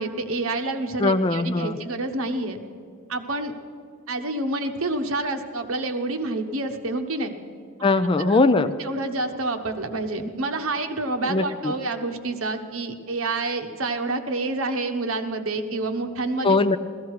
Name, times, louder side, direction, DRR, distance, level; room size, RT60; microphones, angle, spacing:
voice 1, 0.0-2.6 3.1-3.6 4.1-7.3 8.2-8.3 8.8-16.6, right 2 dB, 65° right, 6 dB, 1.1 m, -28 dB
voice 2, 1.0-1.8 7.8-8.7 11.2-11.7 16.4-16.8, left 3 dB, 25° left, 10 dB, 0.4 m, -20 dB
15.5 x 14.5 x 4.8 m, 2.3 s
head